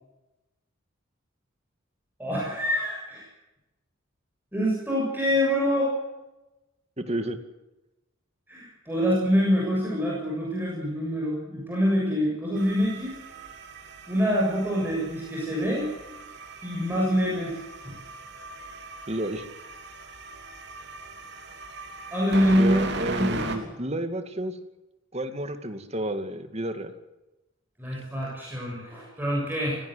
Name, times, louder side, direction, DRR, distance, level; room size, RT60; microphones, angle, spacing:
voice 1, 2.2-3.2 4.5-6.0 8.5-13.1 14.1-15.9 16.6-17.6 22.1-23.5 27.8-29.8, equal, 10° right, -4 dB, 7.3 m, -25 dB
voice 2, 7.0-7.4 19.1-19.4 22.6-24.6 25.1-26.9 27.9-28.0, right 1 dB, 30° right, 8 dB, 2.3 m, -31 dB
sound 1, 12.6-23.6, right 3 dB, 55° right, 3.5 m, -39 dB
25.0 x 17.0 x 8.1 m, 1.0 s
head